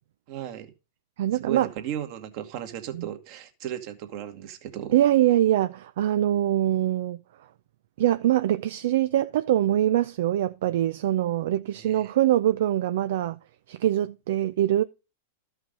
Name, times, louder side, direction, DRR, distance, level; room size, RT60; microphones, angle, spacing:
voice 1, 0.3-0.7 1.4-5.0 11.7-12.1, right 11 dB, 50° right, 2.1 m, -35 dB
voice 2, 1.2-1.7 2.9-3.0 4.9-7.2 8.0-13.4 13.7-14.8, right 12 dB, 70° right, 0.5 m, -23 dB
13.0 x 5.7 x 5.4 m
hypercardioid pair, 120°, 0 cm